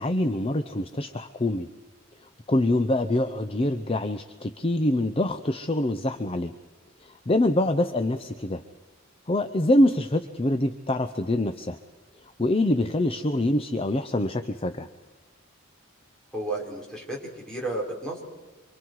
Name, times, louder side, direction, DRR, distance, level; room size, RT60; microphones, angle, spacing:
voice 1, 0.0-1.7 2.5-6.5 7.3-8.6 9.3-11.8 12.4-14.9, left 1 dB, 30° left, 9 dB, 0.7 m, -25 dB
voice 2, 16.3-17.2 17.5-18.2, right 2 dB, 5° left, -3 dB, 4.7 m, -32 dB
27.5 x 24.5 x 4.7 m, 1.1 s
head